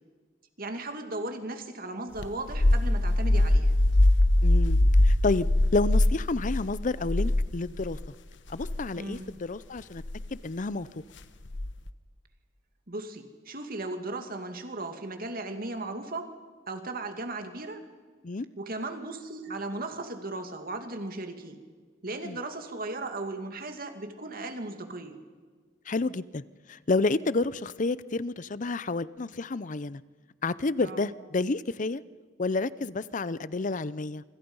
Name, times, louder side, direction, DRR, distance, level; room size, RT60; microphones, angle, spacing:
voice 1, 0.6-3.8 9.0-9.3 12.9-16.3 16.7-17.8 18.6-21.6 22.0-25.2 30.8-31.1, right 2 dB, 50° right, 6 dB, 2.4 m, -36 dB
sound 1, 2.2-8.1 8.5-8.8 10.0-10.3 11.5-11.9, left 1 dB, 70° left, 1.1 m, -23 dB
voice 2, 4.4-8.0 8.5-10.0 10.3-10.9 18.2-18.5 22.2-22.4 25.9-26.4 26.7-30.0 30.4-32.0 32.4-34.2, left 3 dB, 40° left, 18 dB, 0.6 m, -30 dB
26.0 x 25.0 x 5.5 m, 1.5 s
head